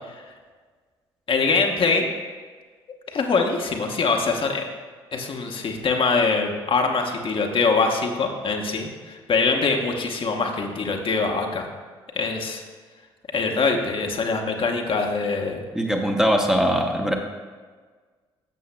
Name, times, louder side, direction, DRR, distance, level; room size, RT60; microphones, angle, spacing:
voice 1, 1.3-2.1 3.1-4.7 5.1-11.7 12.1-12.6 13.3-15.6, left 4 dB, 40° left, 2 dB, 1.0 m, -23 dB
voice 2, 15.7-17.1, equal, 5° right, 2 dB, 0.9 m, -21 dB
12.0 x 7.5 x 2.2 m, 1.5 s
figure-of-eight pair, 50°, 13 cm